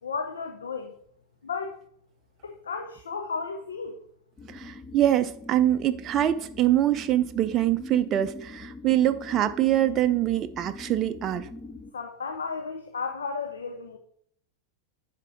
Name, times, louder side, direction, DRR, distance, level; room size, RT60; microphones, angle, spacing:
voice 1, 0.0-0.9 1.4-1.8 2.4-4.0 11.9-14.0, left 5 dB, 70° left, 6 dB, 0.9 m, -33 dB
sound 1, 4.4-11.9, left 3 dB, 15° left, 0.6 m, -43 dB
voice 2, 4.5-11.5, right 12 dB, 30° right, 9 dB, 0.5 m, -24 dB
11.0 x 5.2 x 4.6 m, 0.67 s
figure-of-eight pair, 90°, 0 cm